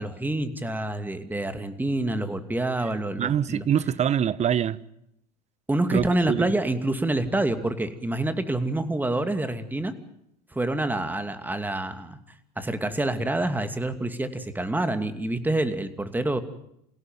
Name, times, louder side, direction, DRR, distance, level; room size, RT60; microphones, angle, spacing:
voice 1, 0.0-3.7 5.7-9.9 10.5-12.2 12.6-16.4, right 1 dB, 10° right, 2.6 m, -27 dB
voice 2, 3.2-4.8 5.9-6.5, right 9 dB, 35° right, 1.1 m, -24 dB
28.0 x 17.0 x 9.3 m
hypercardioid pair, 85°, 21 cm